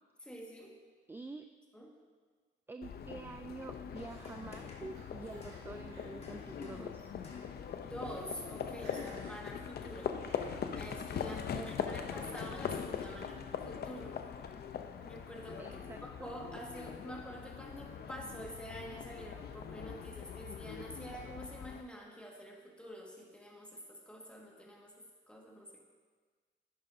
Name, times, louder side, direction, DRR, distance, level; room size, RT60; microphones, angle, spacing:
voice 1, 0.2-0.7 1.7-1.9 7.7-10.2 10.7-14.2 15.1-25.8, equal, 5° left, -1 dB, 1.8 m, -47 dB
voice 2, 1.1-1.5 2.7-7.1 11.5-11.7 15.6-16.3, right 3 dB, 10° right, 7 dB, 0.3 m, -47 dB
Livestock farm animals working animals, 2.8-21.8, left 7 dB, 55° left, 0.7 m, -42 dB
sound 1, 3.9-9.7, left 2 dB, 30° left, 1.8 m, -57 dB
Laughter, 4.0-5.6 5.9-6.6 6.9-7.1 7.8-7.9 8.1-8.4 8.6-9.4 9.8-10.7 11.3-11.5 11.9-12.4 12.8-13.3, right 2 dB, 85° right, 2.6 m, -60 dB
11.5 x 8.8 x 2.7 m, 1.5 s
cardioid pair, 90°, 20 cm